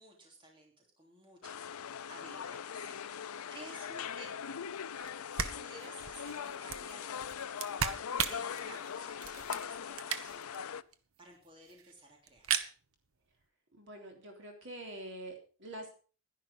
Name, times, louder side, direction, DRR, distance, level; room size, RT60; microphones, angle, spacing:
voice 1, 0.0-4.3 5.3-7.3 8.2-10.7 11.2-12.6, right 1 dB, 25° right, 0 dB, 3.1 m, -54 dB
sound 1, 1.4-10.8, left 7 dB, 90° left, 0.5 m, -41 dB
sound 2, 5.0-5.1 5.4-10.6 10.9-11.0 11.2-11.3 11.4-11.9 12.3-12.7, right 7 dB, 80° right, 1.1 m, -37 dB
voice 2, 13.7-15.9, right 1 dB, 55° right, 2 dB, 3.5 m, -46 dB
11.5 x 11.0 x 5.2 m, 0.39 s
head